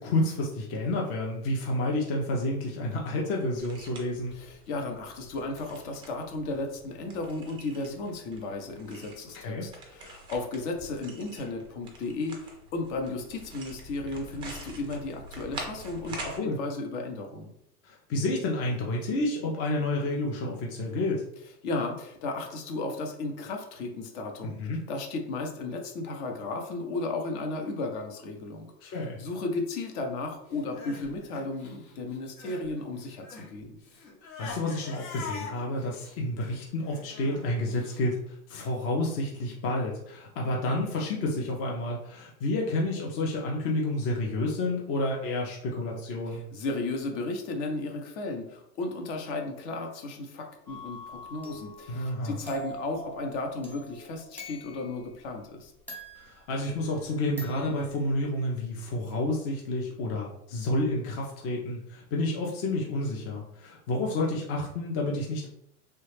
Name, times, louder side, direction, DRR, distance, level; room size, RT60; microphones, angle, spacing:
voice 1, 0.0-4.3 9.3-9.7 16.4-16.6 17.8-21.2 24.4-24.8 28.8-29.2 34.4-46.4 51.9-52.4 56.2-65.5, left 2 dB, 35° left, -2 dB, 0.5 m, -30 dB
sound 1, 3.6-16.4, right 2 dB, 15° right, 0.3 m, -46 dB
voice 2, 4.3-17.5 21.6-33.8 46.3-55.7, left 2 dB, 50° left, 3 dB, 0.9 m, -34 dB
Crying sobbing, 30.5-32.7 33.0-38.0, left 4 dB, 70° left, 1.2 m, -43 dB
sound 2, 50.7-55.1 55.9-57.0 57.4-58.4, equal, 5° left, 1.0 m, -44 dB
3.2 x 2.3 x 3.2 m, 0.74 s
hypercardioid pair, 125°, 44 cm